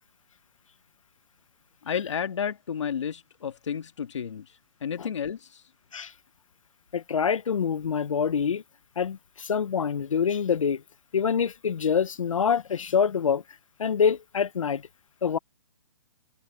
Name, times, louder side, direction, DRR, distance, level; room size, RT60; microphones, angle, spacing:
voice 1, 1.8-5.6, left 7 dB, 65° left, 1.8 m, -32 dB
voice 2, 6.9-8.6 9.0-10.8 11.1-13.4 13.8-14.8 15.2-15.4, left 7 dB, 90° left, 1.0 m, -25 dB
hypercardioid pair, 170°, 16 cm